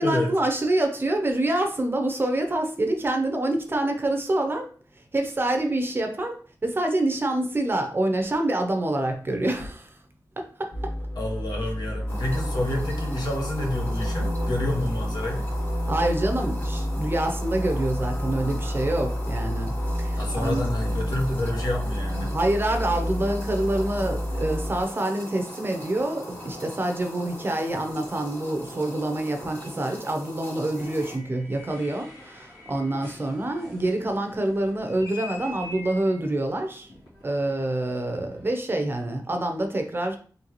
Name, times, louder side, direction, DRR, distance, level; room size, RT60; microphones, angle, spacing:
voice 1, 0.0-4.7 5.1-10.0 10.4-10.9 15.9-20.7 22.2-36.9 37.2-40.2, right 1 dB, 30° right, 0.6 m, -26 dB
sound 1, 10.7-24.8, equal, 50° left, 1.8 m, -29 dB
voice 2, 11.2-15.4 20.1-22.3, left 1 dB, 70° left, 1.1 m, -29 dB
sound 2, 12.1-31.2, equal, 30° left, 2.1 m, -40 dB
sound 3, 30.7-38.5, left 2 dB, 85° left, 2.2 m, -45 dB
3.9 x 3.4 x 3.0 m
wide cardioid pair, 140°, 7 cm